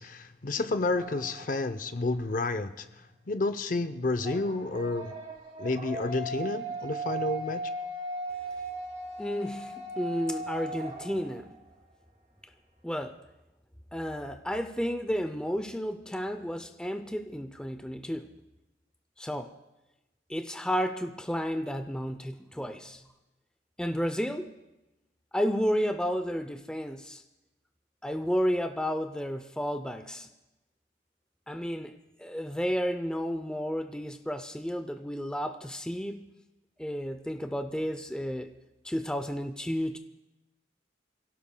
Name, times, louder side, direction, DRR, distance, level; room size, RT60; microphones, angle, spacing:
voice 1, 0.0-2.9 3.3-5.1 5.6-7.7, left 3 dB, 45° left, 10 dB, 0.6 m, -30 dB
sound 1, 0.9-1.7 4.2-11.6, right 2 dB, 30° right, 3.3 m, -38 dB
voice 2, 9.2-11.6 12.8-13.2 13.9-18.3 19.2-19.5 20.3-23.0 23.8-24.5 25.3-27.2 28.0-30.3 31.5-36.3 36.8-38.5 38.8-40.0, equal, 5° left, 8 dB, 0.5 m, -32 dB
27.5 x 17.0 x 2.2 m, 1.0 s
head